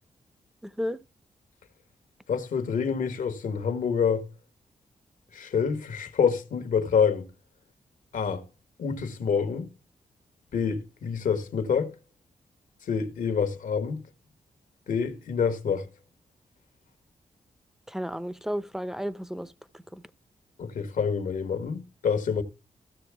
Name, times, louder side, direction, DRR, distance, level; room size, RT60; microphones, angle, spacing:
voice 1, 0.6-1.0 17.9-20.0, equal, 5° right, 0.7 m, -33 dB
voice 2, 2.3-4.2 5.3-7.3 8.1-8.4 8.8-9.7 10.5-11.9 12.9-14.0 14.9-15.9 20.6-22.4, left 6 dB, 75° left, 1.3 m, -27 dB
14.5 x 6.5 x 3.4 m
cardioid pair, 75°, 14 cm